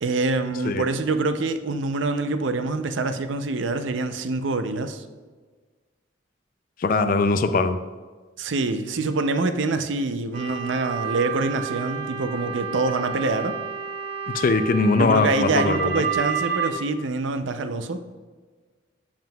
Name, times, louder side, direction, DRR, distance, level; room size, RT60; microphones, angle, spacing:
voice 1, 0.0-5.0 8.4-13.6 15.0-18.0, right 3 dB, 70° right, 9 dB, 0.5 m, -25 dB
voice 2, 6.8-7.8 14.3-16.0, left 3 dB, 45° left, 10 dB, 0.4 m, -21 dB
sound 1, 10.3-16.7, right 6 dB, 50° right, 1.5 m, -30 dB
7.6 x 7.2 x 2.3 m, 1.4 s
head